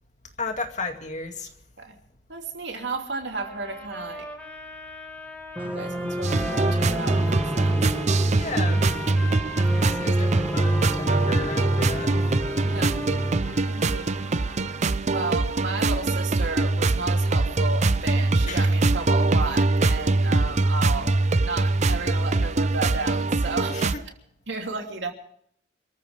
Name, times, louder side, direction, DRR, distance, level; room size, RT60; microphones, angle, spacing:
voice 1, 0.4-1.5 8.4-9.0 9.7-12.2 18.4-18.7 23.7-24.0, left 3 dB, 40° left, 5 dB, 2.3 m, -34 dB
voice 2, 2.3-4.3 5.6-7.7 12.6-13.0 13.7-14.1 15.1-23.9 24.5-25.1, right 3 dB, 65° right, 3 dB, 3.0 m, -33 dB
sound 1, 3.3-15.0, equal, 10° left, 2.7 m, -40 dB
sound 2, 5.6-13.6, equal, 10° right, 2.0 m, -31 dB
sound 3, 6.2-24.0, right 2 dB, 40° right, 0.6 m, -23 dB
27.5 x 14.5 x 3.5 m, 0.66 s
head